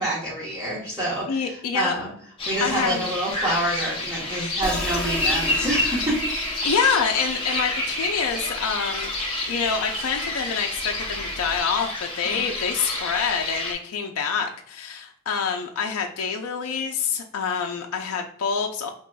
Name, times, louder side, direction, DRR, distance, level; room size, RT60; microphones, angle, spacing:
voice 1, 0.0-2.1 2.5-6.2 12.2-12.4, right 1 dB, 20° right, -10 dB, 1.1 m, -27 dB
voice 2, 1.3-1.9 2.6-3.1 6.6-9.1 9.5-18.9, left 6 dB, 80° left, 2 dB, 0.4 m, -26 dB
sound 1, 2.4-13.7, left 1 dB, 20° left, 1.1 m, -29 dB
sound 2, 4.6-11.6, left 1 dB, 5° left, 0.7 m, -37 dB
5.4 x 2.9 x 2.2 m, 0.64 s
head